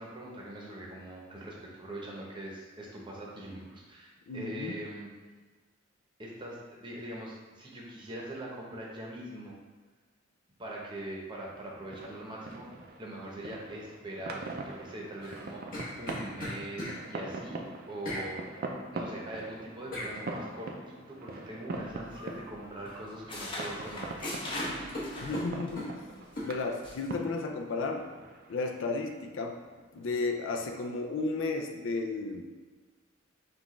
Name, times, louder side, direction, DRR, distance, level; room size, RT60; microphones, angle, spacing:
voice 1, 0.0-5.1 6.2-9.6 10.6-12.7 13.0-17.6 17.9-18.7 18.9-24.2 24.5-24.9, right 1 dB, 25° right, -3 dB, 0.8 m, -42 dB
voice 2, 4.3-4.7 25.2-26.0 26.4-28.1 28.5-29.6 29.9-32.4, left 3 dB, 70° left, 4 dB, 0.4 m, -33 dB
sound 1, 11.5-30.8, right 2 dB, 50° right, 0.4 m, -43 dB
sound 2, 15.2-17.0 18.0-18.3 19.9-20.1 22.1-22.4 22.8-23.4 23.7-23.9 24.2-25.9 26.4-26.5, left 1 dB, 45° left, 1.2 m, -38 dB
sound 3, 21.7-22.6 22.9-25.8 26.2-26.4 26.8-27.1, left 1 dB, 25° left, 0.7 m, -40 dB
6.0 x 2.4 x 3.1 m, 1.4 s
head